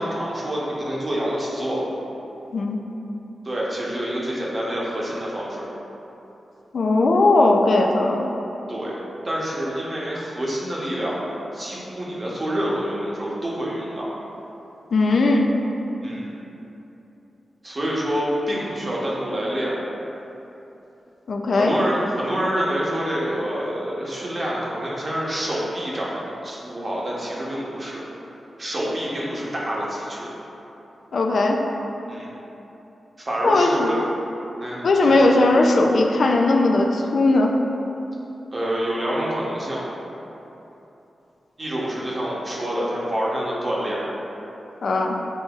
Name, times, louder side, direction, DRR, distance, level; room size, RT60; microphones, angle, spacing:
voice 1, 0.0-1.8 3.4-5.6 8.7-14.1 16.0-16.3 17.6-19.8 21.5-28.0 28.6-30.3 32.1-32.3 33.2-34.0 34.6-35.2 38.5-39.9 41.6-44.1, equal, 30° right, -5 dB, 0.8 m, -27 dB
voice 2, 6.7-8.3 14.9-15.5 21.3-21.7 31.1-31.6 33.4-34.0 34.8-37.6 44.8-45.2, left 2 dB, 60° left, 1 dB, 0.3 m, -18 dB
6.9 x 2.6 x 2.4 m, 3.0 s
wide cardioid pair, 130°, 0 cm